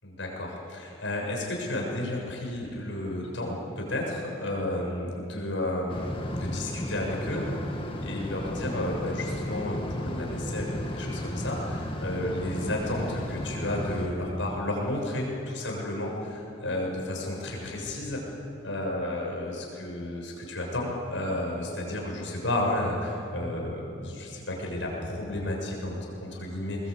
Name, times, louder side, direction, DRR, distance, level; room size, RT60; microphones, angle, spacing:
voice 1, 0.0-7.5 8.0-18.2 18.6-26.9, left 1 dB, 80° left, -1 dB, 7.1 m, -32 dB
sound 1, 5.9-14.1, equal, 30° left, 2.1 m, -34 dB
22.5 x 21.5 x 8.7 m, 2.8 s
head